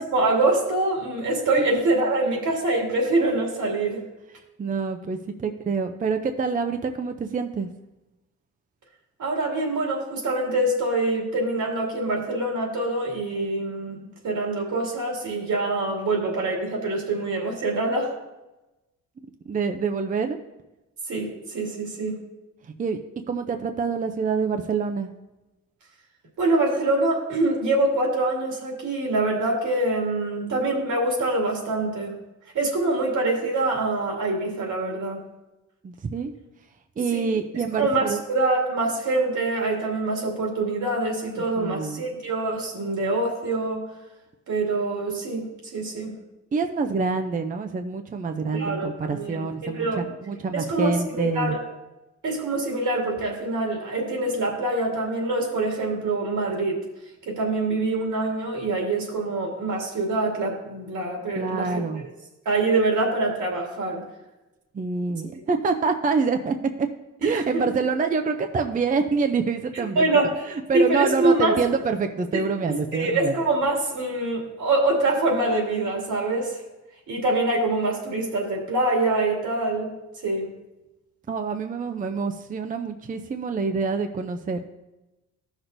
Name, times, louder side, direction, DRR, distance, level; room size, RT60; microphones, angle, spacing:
voice 1, 0.0-4.0 9.2-14.0 14.2-18.1 21.1-22.2 26.4-32.1 32.5-35.2 37.1-37.3 37.7-43.8 44.5-45.5 45.7-46.1 48.5-50.0 50.5-51.6 52.2-56.8 57.3-61.8 62.5-64.0 67.3-67.6 70.0-70.3 70.7-71.6 72.3-76.6 77.1-79.9 80.2-80.5, right 2 dB, 75° right, -1 dB, 2.4 m, -25 dB
voice 2, 4.6-7.7 19.5-20.4 22.8-23.0 23.3-25.1 35.8-36.3 37.0-38.2 41.6-42.1 46.5-51.6 61.4-62.0 64.7-66.9 67.2-70.1 70.7-73.3 81.3-84.6, right 5 dB, 25° right, 6 dB, 0.5 m, -26 dB
14.0 x 6.1 x 2.6 m, 1.0 s
cardioid pair, 105°, 31 cm